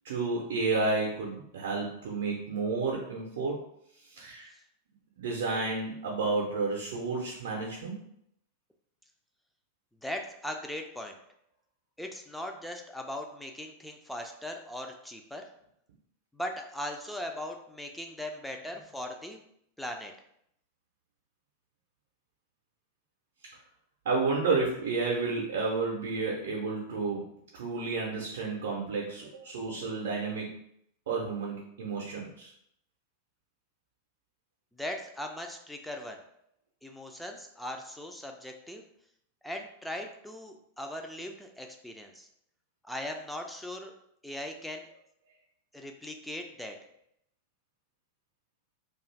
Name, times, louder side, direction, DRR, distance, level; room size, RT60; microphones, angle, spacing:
voice 1, 0.0-3.6 4.1-4.5 5.2-8.0 24.0-27.2 27.5-30.5 31.1-32.5, right 3 dB, 60° right, -2 dB, 0.5 m, -31 dB
voice 2, 10.0-11.2 12.0-15.5 16.3-19.4 19.8-20.1 34.7-36.2 36.8-38.8 39.4-42.3 42.8-43.9 44.2-44.9 45.7-46.8, left 1 dB, ahead, 3 dB, 0.3 m, -39 dB
2.4 x 2.4 x 3.1 m, 0.72 s
figure-of-eight pair, 90°, 0 cm